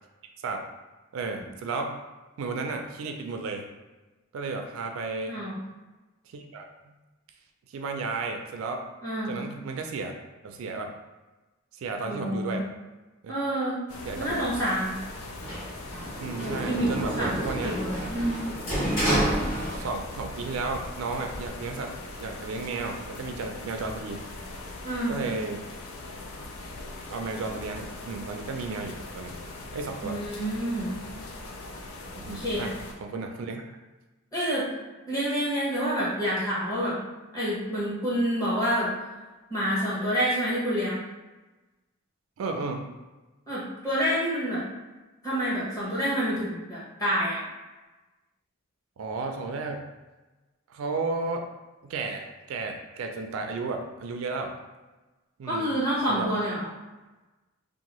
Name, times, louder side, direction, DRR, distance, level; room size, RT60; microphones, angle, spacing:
voice 1, 1.1-1.9 2.4-3.7 4.3-5.4 6.3-7.0 7.7-8.8 9.3-10.1 10.4-10.9 11.7-12.7 13.2-13.4 14.0-14.5 16.2-17.8 19.6-21.9 22.2-24.2 25.1-25.6 27.1-29.4 29.7-30.2 32.1-32.7 33.0-33.6 42.4-42.9 49.0-49.8 50.7-51.5 51.8-54.5 55.4-55.7 56.1-56.6, right 3 dB, 75° right, 4 dB, 0.3 m, -33 dB
voice 2, 9.0-9.3 12.0-12.6 13.3-13.8 14.1-15.0 16.4-17.3 17.6-18.5 24.8-25.2 30.0-31.0 32.3-32.7 34.3-34.7 35.1-37.0 37.3-38.9 39.5-41.0 43.5-44.6 45.2-47.4 55.5-56.7, equal, 15° left, -9 dB, 1.0 m, -28 dB
sound 1, 13.9-32.9, left 2 dB, 85° left, 0.4 m, -41 dB
Sliding door, 15.4-20.2 20.6-21.5, right 1 dB, 60° left, 1.2 m, -30 dB
2.6 x 2.1 x 2.9 m, 1.2 s
head